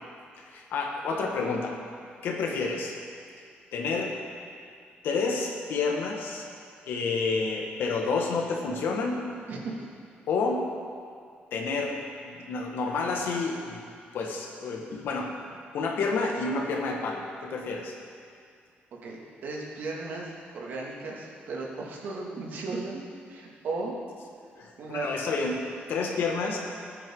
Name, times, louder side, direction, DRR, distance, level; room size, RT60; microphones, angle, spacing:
voice 1, 0.5-1.7 2.2-2.9 3.7-4.1 5.0-6.5 6.8-9.3 10.3-10.7 11.5-13.8 14.1-15.4 15.7-17.9 24.6-25.6 25.9-26.6, left 4 dB, 70° left, 1 dB, 1.7 m, -29 dB
voice 2, 18.9-23.9 24.8-25.3, right 3 dB, 60° right, -3 dB, 2.4 m, -36 dB
19.0 x 9.3 x 3.9 m, 2.3 s
cardioid pair, 165°, 4 cm